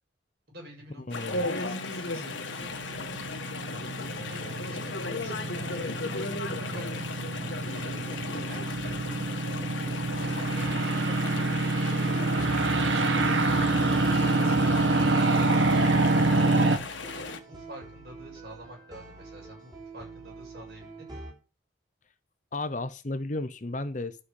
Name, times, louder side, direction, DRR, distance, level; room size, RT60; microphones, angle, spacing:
voice 1, 0.5-3.0 3.7-9.6 10.0-11.5 12.7-13.4 13.9-21.2, right 1 dB, 55° right, 7.1 m, -49 dB
Chatter / Stream, 1.1-17.4, left 3 dB, 90° left, 1.6 m, -36 dB
voice 2, 1.1-1.5 22.5-24.2, left 2 dB, 40° left, 0.8 m, -33 dB
sound 1, 2.2-16.8, right 2 dB, 85° right, 1.3 m, -26 dB
sound 2, 11.9-21.3, right 2 dB, 25° right, 3.7 m, -44 dB
11.5 x 5.7 x 8.3 m
head